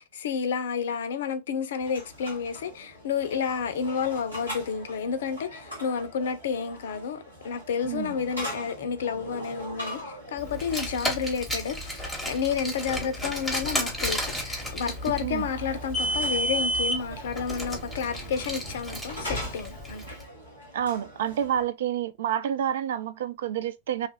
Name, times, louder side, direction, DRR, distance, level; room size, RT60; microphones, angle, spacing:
voice 1, 0.0-20.1, left 6 dB, 60° left, 0.4 m, -30 dB
sound 1, 1.8-21.7, equal, 90° right, 1.3 m, -42 dB
voice 2, 7.9-8.2 15.2-15.5 20.7-24.1, right 9 dB, 60° right, 0.3 m, -29 dB
Car, 10.5-20.0, equal, ahead, 1.0 m, -31 dB
2.9 x 2.4 x 2.9 m
figure-of-eight pair, 90°, 0 cm